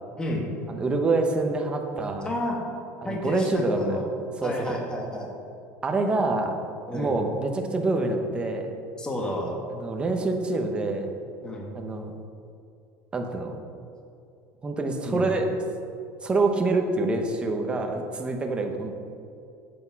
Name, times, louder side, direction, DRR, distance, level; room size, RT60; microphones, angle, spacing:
voice 1, 0.2-0.5 2.2-2.6 3.0-4.1 4.4-5.3 6.9-7.2 9.0-9.5 11.4-11.7 15.1-15.3, left 1 dB, 10° left, 0 dB, 1.3 m, -30 dB
voice 2, 0.7-2.3 3.0-4.0 4.4-4.8 5.8-6.6 6.9-8.7 9.7-11.1 11.7-12.1 13.1-13.5 14.6-15.5 16.2-18.9, right 3 dB, 15° right, 3 dB, 0.9 m, -26 dB
11.5 x 8.3 x 4.7 m, 2.5 s
cardioid pair, 175°, 7 cm